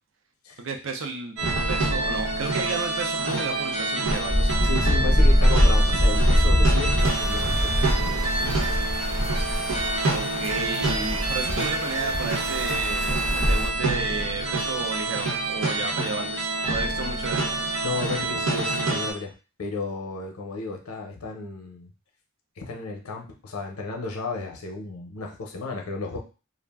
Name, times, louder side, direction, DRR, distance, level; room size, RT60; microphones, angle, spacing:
voice 1, 0.6-1.4 1.7-4.6 10.1-17.5, right 4 dB, 60° right, 3 dB, 0.5 m, -32 dB
sound 1, 1.4-19.1, right 2 dB, 90° right, 0.9 m, -27 dB
Wind, 4.1-10.0, equal, 5° left, 0.5 m, -21 dB
voice 2, 4.6-8.3 17.8-19.3 19.6-21.9 22.6-26.2, left 3 dB, 90° left, 2 dB, 0.6 m, -33 dB
sound 2, 7.0-13.7, equal, 15° right, 0.9 m, -32 dB
2.4 x 2.0 x 3.4 m, 0.33 s
head